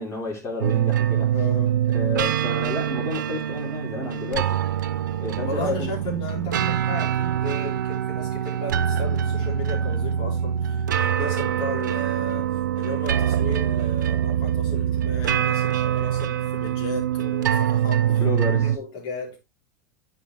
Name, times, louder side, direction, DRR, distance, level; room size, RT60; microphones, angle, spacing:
voice 1, 0.0-1.3 1.9-4.6 5.2-5.9 18.1-18.8, left 3 dB, 30° left, 4.1 m, -31 dB
sound 1, 0.6-18.8, right 10 dB, 80° right, 0.6 m, -24 dB
voice 2, 1.3-1.8 5.5-12.5 12.8-18.2 18.6-19.4, left 2 dB, 50° left, 4.1 m, -34 dB
9.7 x 5.2 x 3.0 m
hypercardioid pair, 90°, 10 cm